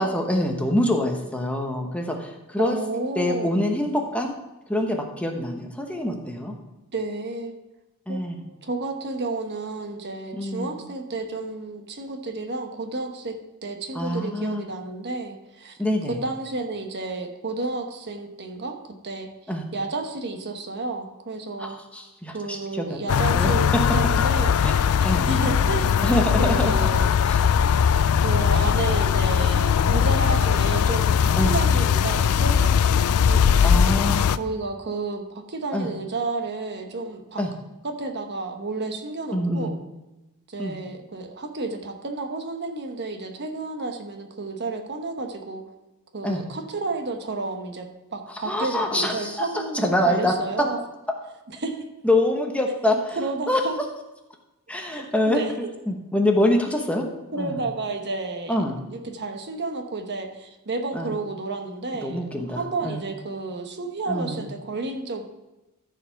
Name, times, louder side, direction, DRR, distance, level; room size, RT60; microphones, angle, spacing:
voice 1, 0.0-2.8 3.1-4.3 4.7-6.5 8.1-8.4 10.3-10.8 13.9-14.6 15.8-16.2 19.5-19.6 21.6-23.0 23.3-23.5 24.6-24.7 25.0-25.3 26.0-26.7 27.3-27.4 31.4-31.5 33.6-34.4 35.7-35.9 37.4-37.5 39.3-39.7 40.6-40.8 46.2-46.4 48.4-49.5 49.7-50.3 52.0-53.2 53.5-53.6 54.7-55.4 55.9-57.1 57.4-57.6 58.5-58.8 60.9-61.1 62.0-63.0 64.1-64.4, left 1 dB, 5° left, 2 dB, 1.0 m, -25 dB
voice 2, 2.6-3.5 6.9-7.6 8.1-15.8 16.1-18.8 19.0-19.3 19.7-21.8 22.3-24.6 25.3-26.1 26.4-27.0 28.2-33.0 33.2-33.7 34.4-37.4 37.8-39.7 40.5-45.6 46.1-47.9 48.1-50.8 51.6-51.8 53.2-53.8 54.9-55.5 57.3-58.6 58.9-65.2, right 3 dB, 55° right, 5 dB, 1.0 m, -31 dB
sound 1, 23.1-34.4, left 7 dB, 85° left, 0.4 m, -20 dB
13.5 x 4.9 x 5.7 m, 1.0 s
head